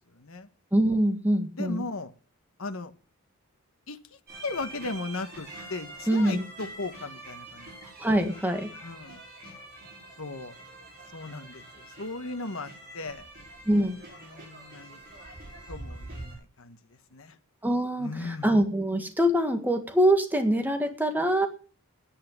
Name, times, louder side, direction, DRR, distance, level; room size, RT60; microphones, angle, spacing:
voice 1, 0.1-0.5 1.6-2.1 2.6-2.9 3.9-7.8 8.8-9.2 10.2-10.6 11.1-13.3 14.2-15.0 15.7-17.4 18.0-18.5, left 3 dB, 60° left, 8 dB, 1.3 m, -37 dB
voice 2, 0.7-1.8 6.1-6.5 8.0-8.7 13.6-14.0 17.6-21.5, right 1 dB, 10° right, 5 dB, 1.7 m, -24 dB
sound 1, 4.3-16.3, right 1 dB, 45° right, 5.3 m, -45 dB
10.0 x 8.6 x 7.2 m, 0.39 s
head